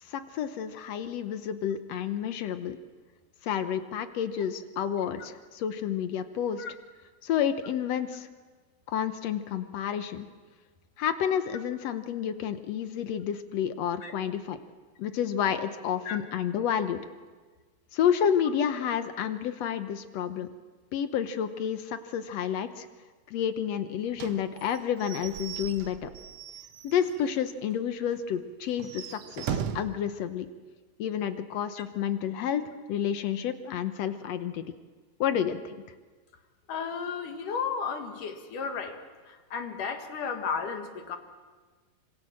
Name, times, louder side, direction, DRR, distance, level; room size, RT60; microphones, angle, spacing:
voice 1, 0.0-2.8 3.4-6.6 7.2-8.3 8.9-10.3 11.0-14.6 15.0-17.0 17.9-20.5 20.9-22.9 23.3-26.1 26.8-30.5 31.0-34.6 35.2-35.8, left 8 dB, 80° left, 10 dB, 1.5 m, -30 dB
Slam / Squeak / Wood, 24.2-27.4 27.7-27.8 28.1-28.2 28.7-30.0, right 8 dB, 70° right, 1.5 m, -38 dB
voice 2, 36.7-39.0 39.3-41.2, left 6 dB, 65° left, 6 dB, 3.1 m, -33 dB
26.0 x 25.5 x 7.6 m, 1.4 s
omnidirectional pair, 4.3 m